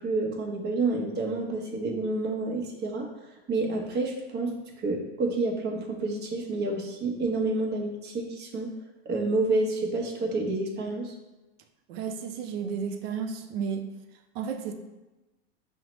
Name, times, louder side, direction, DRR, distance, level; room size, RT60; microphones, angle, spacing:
voice 1, 0.0-3.1 3.5-4.5 4.8-8.7 9.1-11.1, right 2 dB, 35° right, 1 dB, 0.8 m, -29 dB
voice 2, 11.9-13.8 14.3-14.7, right 6 dB, 70° right, 6 dB, 0.6 m, -32 dB
5.5 x 2.1 x 3.0 m, 1.1 s
hypercardioid pair, 100°, 31 cm